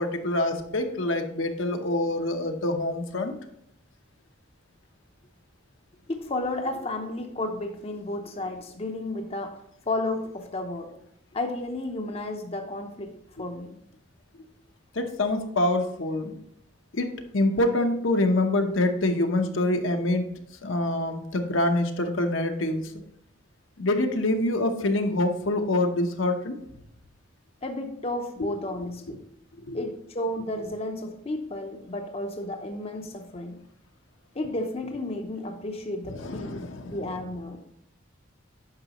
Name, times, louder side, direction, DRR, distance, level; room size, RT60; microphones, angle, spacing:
voice 1, 0.0-3.3 14.9-16.3 16.9-17.1 17.3-20.3 20.6-22.9 23.8-26.6 29.1-29.2 29.6-29.8 36.1-37.1, left 1 dB, 70° left, 5 dB, 0.9 m, -26 dB
voice 2, 6.1-9.6 9.9-10.9 11.3-13.1 13.4-13.8 27.6-29.2 29.7-33.6 34.4-37.6, left 2 dB, 30° left, 4 dB, 0.6 m, -32 dB
9.5 x 6.0 x 3.0 m, 0.73 s
head